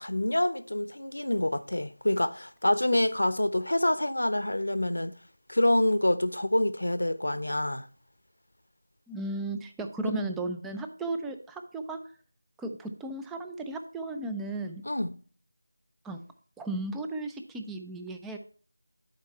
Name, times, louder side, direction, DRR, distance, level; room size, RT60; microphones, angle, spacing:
voice 1, 0.0-5.1 5.5-7.9 10.0-10.2 14.8-15.1, left 1 dB, 85° left, 0.9 m, -27 dB
voice 2, 9.1-12.0 12.6-14.8 16.0-16.2 16.6-18.4, right 2 dB, 5° right, 0.4 m, -35 dB
11.0 x 4.5 x 4.4 m
figure-of-eight pair, 170°, 0 cm